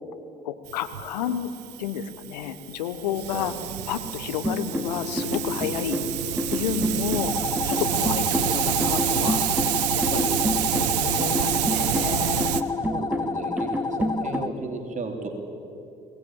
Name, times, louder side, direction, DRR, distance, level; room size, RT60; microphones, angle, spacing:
voice 1, 0.4-1.5 1.8-3.5 3.9-6.0 6.5-9.5 10.1-10.4 11.0-12.5, left 9 dB, 85° left, 11 dB, 1.2 m, -31 dB
Hiss, 0.7-12.6, right 13 dB, 80° right, 0.8 m, -28 dB
sound 1, 4.4-14.4, equal, 10° right, 2.2 m, -29 dB
voice 2, 5.6-6.0 7.7-8.0 10.1-11.0 12.9-15.3, right 3 dB, 35° right, 3 dB, 3.3 m, -35 dB
sound 2, 7.2-14.5, left 4 dB, 20° left, 0.7 m, -31 dB
22.5 x 18.5 x 8.9 m, 2.7 s
hypercardioid pair, 55°, 21 cm